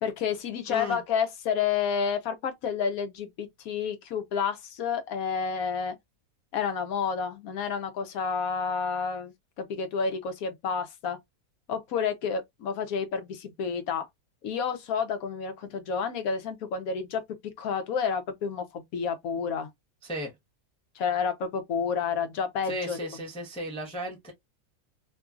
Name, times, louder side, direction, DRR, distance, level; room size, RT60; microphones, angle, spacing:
voice 1, 0.0-6.0 6.5-11.2 11.7-14.0 14.4-19.7 21.0-23.0, left 6 dB, 70° left, 1.1 m, -30 dB
voice 2, 0.7-1.0 20.0-20.3 22.6-24.3, left 1 dB, 5° left, 0.6 m, -35 dB
2.9 x 2.6 x 2.3 m
omnidirectional pair, 1.6 m